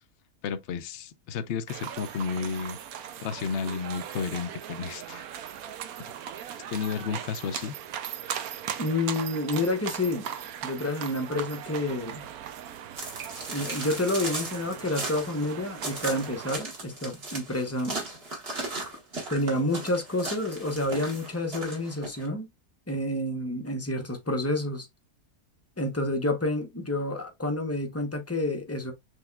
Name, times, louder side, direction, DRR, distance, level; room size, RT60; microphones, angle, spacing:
voice 1, 0.4-2.8 3.2-5.3 6.7-7.7, left 6 dB, 60° left, 0.8 m, -32 dB
sound 1, 1.7-16.6, right 9 dB, 80° right, 1.1 m, -39 dB
voice 2, 8.8-10.3 10.6-12.3 13.5-18.0 19.3-22.5 22.9-24.9 25.8-28.9, left 1 dB, 15° left, 0.5 m, -29 dB
sound 2, 13.0-22.3, right 2 dB, 45° right, 1.6 m, -37 dB
6.3 x 3.2 x 2.3 m
omnidirectional pair, 1.6 m